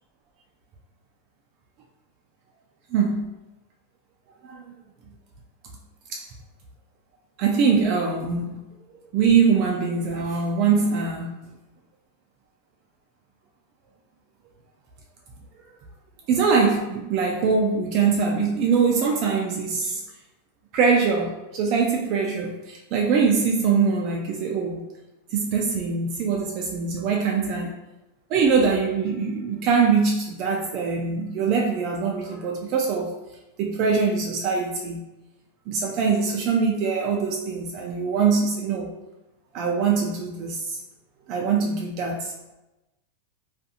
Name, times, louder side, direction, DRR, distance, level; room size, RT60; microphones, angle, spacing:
voice 1, 2.9-3.2 4.5-4.6 6.1-6.3 7.4-8.6 9.1-11.4 16.3-20.0 20.7-24.8 25.3-27.7 28.3-33.1 33.6-35.0 35.7-38.9 39.5-40.8 41.3-42.3, right 5 dB, 45° right, 1 dB, 0.3 m, -23 dB
2.5 x 2.4 x 2.7 m, 0.97 s
supercardioid pair, 135°, 0 cm